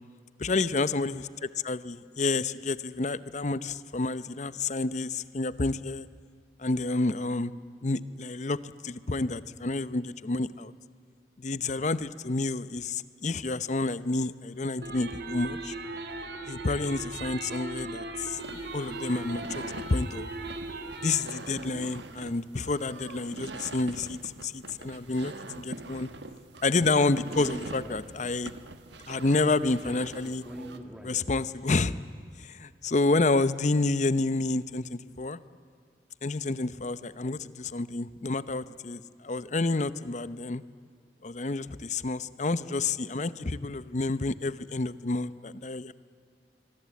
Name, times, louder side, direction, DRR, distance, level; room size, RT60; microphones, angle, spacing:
voice 1, 0.4-1.2 1.6-6.1 6.6-7.5 7.8-10.7 11.4-15.7 16.5-20.3 21.0-26.1 26.6-28.5 29.1-30.4 31.0-32.0 32.4-35.4 36.2-40.6 41.2-45.9, left 3 dB, 40° left, 15 dB, 0.7 m, -29 dB
sound 1, 14.8-21.2, right 3 dB, 65° right, 2.2 m, -38 dB
sound 2, 18.4-30.8, right 3 dB, 85° right, 1.3 m, -44 dB
Speech, 26.7-28.5 29.8-31.6, equal, 5° right, 2.3 m, -43 dB
25.5 x 23.0 x 8.4 m, 2.2 s
head